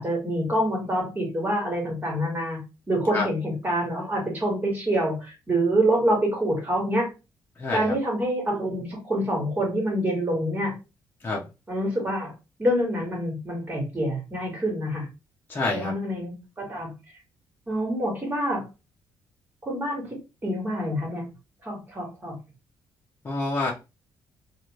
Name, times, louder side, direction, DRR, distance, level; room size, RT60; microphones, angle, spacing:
voice 1, 0.0-2.6 2.9-7.1 7.7-10.7 11.7-12.3 12.6-15.1 15.7-16.9 17.7-18.6 19.6-21.3 21.6-22.4, right 1 dB, 25° right, 0 dB, 1.7 m, -26 dB
voice 2, 7.6-7.9 11.2-11.5 15.5-15.9 23.2-23.7, left 3 dB, 25° left, -3 dB, 0.8 m, -27 dB
3.0 x 2.5 x 3.1 m, 0.27 s
cardioid pair, 125°, 8 cm